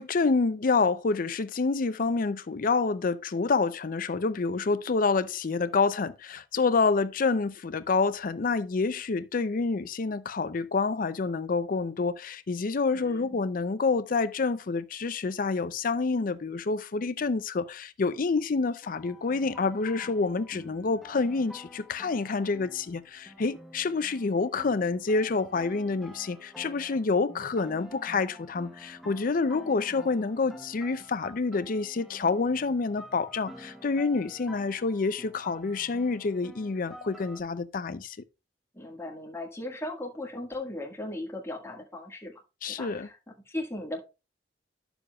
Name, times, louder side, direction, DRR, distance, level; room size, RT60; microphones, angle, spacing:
voice 1, 0.0-38.2 42.6-43.1, left 4 dB, 50° left, 0.5 m, -28 dB
voice 2, 12.9-13.4 29.9-30.3 38.7-42.4 42.7-43.2 43.5-44.0, left 1 dB, 15° left, 1.7 m, -38 dB
sound 1, 18.8-37.4, equal, ahead, 0.9 m, -49 dB
10.0 x 7.1 x 2.3 m
head